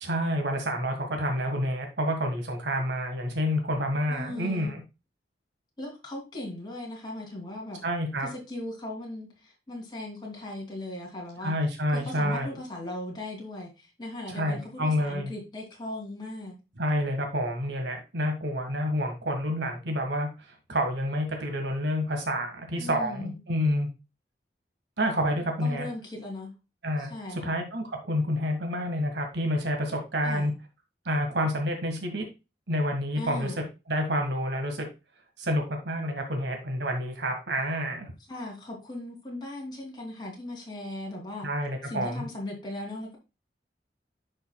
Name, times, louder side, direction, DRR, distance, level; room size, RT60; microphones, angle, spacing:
voice 1, 0.0-4.8 7.8-8.3 11.4-12.5 14.3-15.3 16.8-20.3 20.7-23.9 25.0-25.9 26.8-30.5 31.0-32.2 32.7-33.5 33.9-34.9 35.4-38.1 41.4-42.2, equal, 80° right, 4 dB, 1.6 m, -28 dB
voice 2, 4.1-4.7 5.8-7.8 8.3-11.5 12.0-16.5 22.8-23.4 25.6-26.5 27.0-27.5 30.2-30.5 33.2-33.6 38.3-41.5 41.8-43.2, left 1 dB, 25° left, -1 dB, 2.8 m, -38 dB
10.5 x 5.4 x 2.3 m, 0.27 s
head